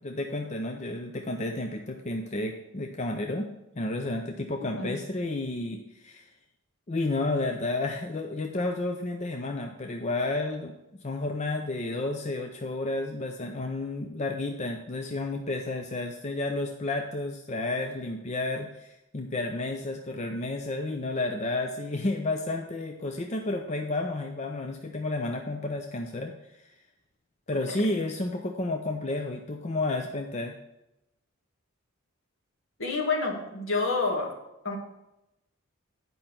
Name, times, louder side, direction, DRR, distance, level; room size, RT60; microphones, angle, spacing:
voice 1, 0.0-6.2 6.9-10.7 11.0-26.3 27.5-30.6, left 2 dB, 35° left, 3 dB, 0.5 m, -31 dB
voice 2, 32.8-34.3 34.6-34.8, left 3 dB, 70° left, 1 dB, 1.8 m, -28 dB
8.9 x 5.4 x 5.8 m, 0.91 s
head